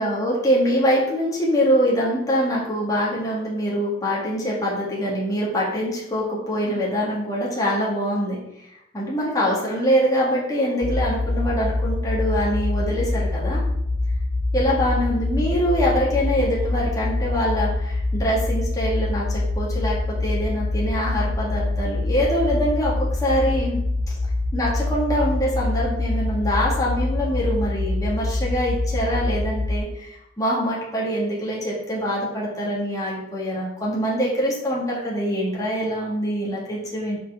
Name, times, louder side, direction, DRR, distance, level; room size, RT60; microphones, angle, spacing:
voice 1, 0.0-8.7 8.9-13.6 14.5-23.8 24.1-24.2 24.5-37.2, equal, 20° left, -6 dB, 1.8 m, -24 dB
sound 1, 10.8-29.8, left 2 dB, 35° left, 0.6 m, -25 dB
7.5 x 4.6 x 3.6 m, 0.83 s
head